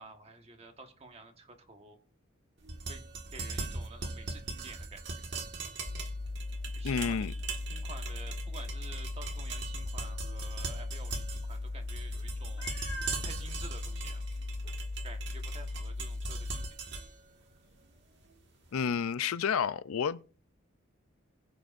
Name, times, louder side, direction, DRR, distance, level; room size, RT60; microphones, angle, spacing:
voice 1, 0.0-2.0 2.9-3.0 3.3-5.2 6.7-7.3 7.7-12.8 13.2-14.2 15.0-16.7, right 3 dB, 30° right, 1.3 m, -50 dB
sound 1, 2.6-18.7, right 4 dB, 55° right, 1.7 m, -41 dB
sound 2, 5.9-16.7, left 2 dB, 25° left, 0.4 m, -38 dB
voice 2, 6.8-7.3 18.7-20.4, left 6 dB, 85° left, 0.5 m, -30 dB
Meow, 12.6-13.3 14.0-14.1 14.6-14.7 18.7-18.8, left 1 dB, 65° left, 1.9 m, -42 dB
21.5 x 7.6 x 2.6 m
head